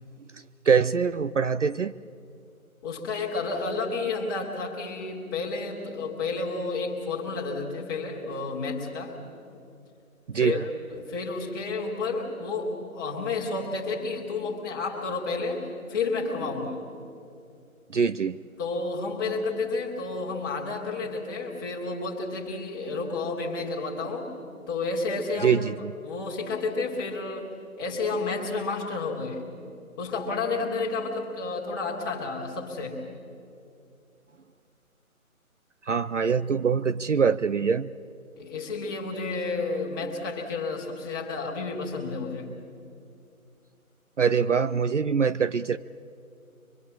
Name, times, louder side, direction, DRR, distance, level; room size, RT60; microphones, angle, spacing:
voice 1, 0.7-1.9 10.3-10.6 17.9-18.4 25.4-25.9 35.9-37.9 44.2-45.8, right 6 dB, 55° right, 14 dB, 0.6 m, -23 dB
voice 2, 2.8-9.2 10.3-16.8 18.6-24.3 24.7-25.6 26.0-27.5 27.8-29.4 30.0-33.0 38.4-42.5, left 3 dB, 15° left, -3 dB, 2.3 m, -31 dB
24.5 x 23.0 x 7.3 m, 2.5 s
figure-of-eight pair, 165°, 43 cm